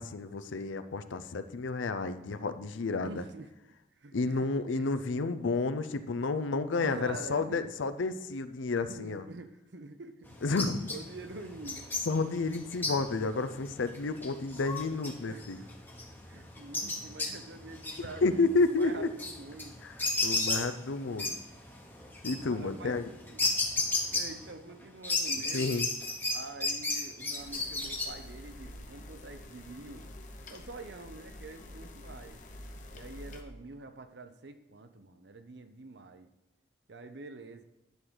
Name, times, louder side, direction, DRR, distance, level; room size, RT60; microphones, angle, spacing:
voice 1, 0.0-3.2 4.1-9.2 10.4-10.9 12.1-15.6 18.0-19.1 20.2-21.4 22.2-23.1 25.5-25.9, left 3 dB, 85° left, 12 dB, 0.5 m, -31 dB
voice 2, 3.0-3.5 4.0-4.9 6.8-7.7 8.9-10.6 10.9-11.9 15.3-15.7 16.2-19.8 22.4-23.4 24.1-25.8 26.3-30.1 30.5-32.4 32.9-36.3 36.9-37.6, right 3 dB, 65° right, 9 dB, 0.7 m, -46 dB
sound 1, 10.2-24.7 25.0-28.0, left 3 dB, 10° left, 0.9 m, -35 dB
sound 2, 27.4-33.4, left 1 dB, 40° left, 0.9 m, -48 dB
10.5 x 3.9 x 6.2 m, 0.98 s
head